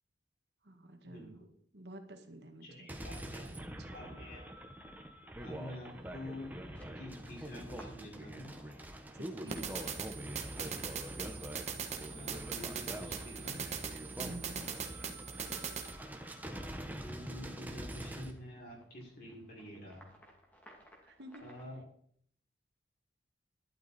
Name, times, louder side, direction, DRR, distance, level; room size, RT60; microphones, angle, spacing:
voice 1, 0.6-1.4 1.7-4.0 9.1-9.7 14.1-14.7 21.0-21.4, right 1 dB, 75° right, 5 dB, 1.8 m, -50 dB
voice 2, 2.6-3.5 3.9-4.4 5.4-6.5 6.9-8.5 12.0-13.6 13.8-13.9 17.0-20.1 21.4-21.8, left 1 dB, 55° left, -3 dB, 5.9 m, -48 dB
sound 1, 2.9-18.3, right 1 dB, 10° right, 1.3 m, -45 dB
sound 2, 5.4-21.7, equal, 10° left, 2.5 m, -62 dB
sound 3, 9.5-15.9, right 6 dB, 40° right, 1.4 m, -41 dB
12.0 x 12.0 x 4.4 m, 0.64 s
head